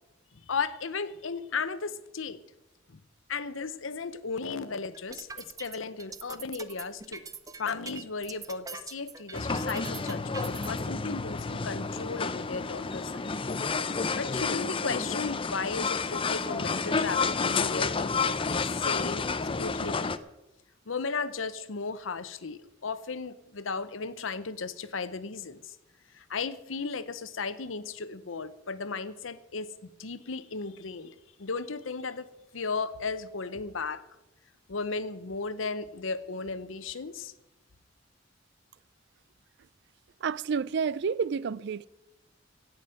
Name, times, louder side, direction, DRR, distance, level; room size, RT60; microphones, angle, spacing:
voice 1, 0.5-2.4 2.9-3.0 3.3-7.2 7.6-13.3 13.9-19.3 19.6-20.2 20.9-25.8 26.1-29.7 30.0-34.0 34.7-37.3, left 4 dB, 85° left, 0.8 m, -35 dB
sound 1, 4.9-10.7, right 4 dB, 20° right, 0.7 m, -43 dB
sound 2, 9.3-20.2, left 4 dB, 25° left, 0.6 m, -30 dB
voice 2, 40.2-41.9, right 6 dB, 60° right, 0.4 m, -29 dB
17.0 x 6.1 x 8.9 m
head